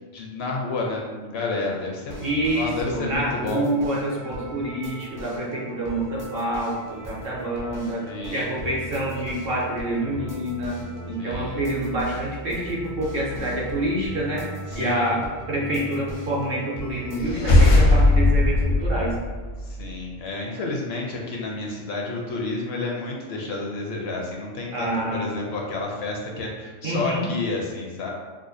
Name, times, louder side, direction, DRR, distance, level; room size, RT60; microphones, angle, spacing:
voice 1, 0.1-3.7 8.0-8.5 11.2-11.6 14.7-15.2 19.6-28.1, left 3 dB, 65° left, -1 dB, 0.7 m, -30 dB
sound 1, 2.1-17.2, equal, 25° right, 0.4 m, -38 dB
voice 2, 2.2-8.0 8.3-10.8 11.1-14.5 14.7-15.2 15.5-19.2 24.7-25.3 26.8-27.3, right 1 dB, 55° right, -4 dB, 0.9 m, -27 dB
sound 2, 17.1-19.9, left 2 dB, 80° left, 1.1 m, -18 dB
4.8 x 2.1 x 2.5 m, 1.3 s
omnidirectional pair, 1.3 m